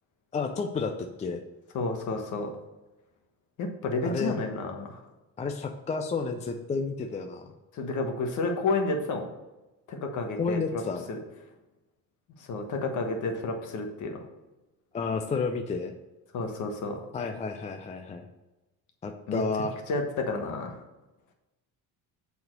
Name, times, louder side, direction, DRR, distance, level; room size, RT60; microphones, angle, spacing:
voice 1, 0.3-1.4 4.0-4.3 5.4-7.5 10.4-11.0 14.9-15.9 17.1-18.3 19.0-19.7, left 4 dB, 20° left, 5 dB, 0.4 m, -31 dB
voice 2, 1.7-2.5 3.6-5.0 7.7-9.3 9.9-10.8 11.1-11.2 12.4-14.2 16.3-17.0 19.3-19.4 19.9-20.8, left 3 dB, 55° left, 4 dB, 1.3 m, -30 dB
6.9 x 4.2 x 6.6 m, 1.1 s
cardioid pair, 150°, 37 cm